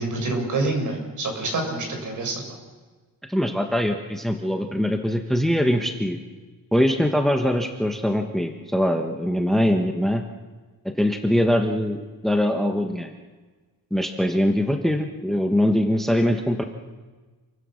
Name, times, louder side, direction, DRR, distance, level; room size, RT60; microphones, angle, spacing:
voice 1, 0.0-2.4, right 2 dB, 55° right, 3 dB, 6.4 m, -27 dB
voice 2, 3.3-6.2 6.7-10.2 11.0-13.1 13.9-16.6, equal, ahead, 5 dB, 1.2 m, -22 dB
28.0 x 23.5 x 6.5 m, 1.3 s
wide cardioid pair, 175°, 36 cm